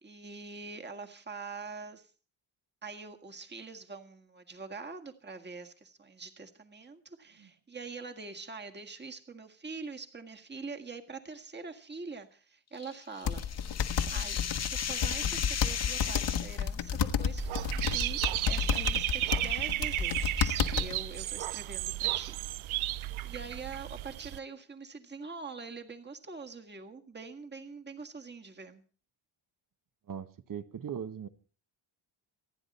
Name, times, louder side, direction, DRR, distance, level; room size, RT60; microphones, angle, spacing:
voice 1, 0.0-2.1 2.8-13.4 14.1-14.4 14.7-17.4 17.7-18.2 18.4-22.3 23.2-28.8, right 4 dB, 20° right, 1.7 m, -44 dB
sound 1, 12.8-16.6, left 8 dB, 35° left, 0.7 m, -36 dB
sound 2, 13.3-21.0, left 7 dB, 60° left, 1.5 m, -31 dB
Dog / Bird, 17.4-24.4, right 15 dB, 80° right, 0.7 m, -33 dB
voice 2, 30.1-31.3, right 8 dB, 45° right, 1.2 m, -39 dB
27.5 x 10.0 x 4.2 m
cardioid pair, 125°, 47 cm